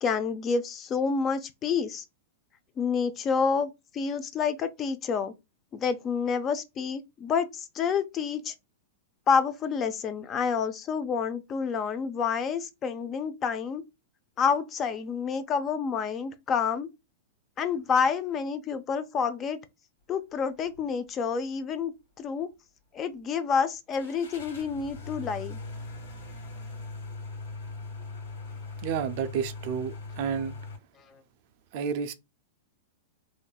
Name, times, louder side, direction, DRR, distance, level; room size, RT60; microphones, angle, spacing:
voice 1, 0.0-2.0 2.8-5.3 5.7-8.5 9.3-13.8 14.4-16.9 17.6-19.6 20.1-21.9 22.2-22.5 22.9-25.6, left 6 dB, 30° left, 0.4 m, -28 dB
sound 1, 20.6-20.9 21.3-21.4 23.9-30.8, left 3 dB, 85° left, 1.6 m, -40 dB
voice 2, 28.8-30.5 31.7-32.1, right 7 dB, 55° right, 0.4 m, -30 dB
3.4 x 2.6 x 2.3 m
hypercardioid pair, 130°, 0 cm